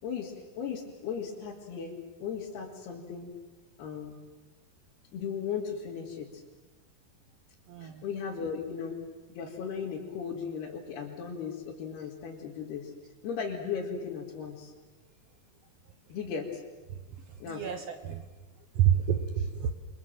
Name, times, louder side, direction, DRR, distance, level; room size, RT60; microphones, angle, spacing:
voice 1, 0.0-3.3 3.8-4.2 5.1-6.4 7.8-9.0 9.3-12.9 13.2-14.7 16.1-16.6 17.4-17.7, left 6 dB, 70° left, -3 dB, 4.5 m, -36 dB
voice 2, 7.7-8.0 17.5-18.2 18.7-19.7, right 9 dB, 85° right, 7 dB, 1.4 m, -28 dB
30.0 x 24.0 x 7.6 m, 1.2 s
omnidirectional pair, 4.8 m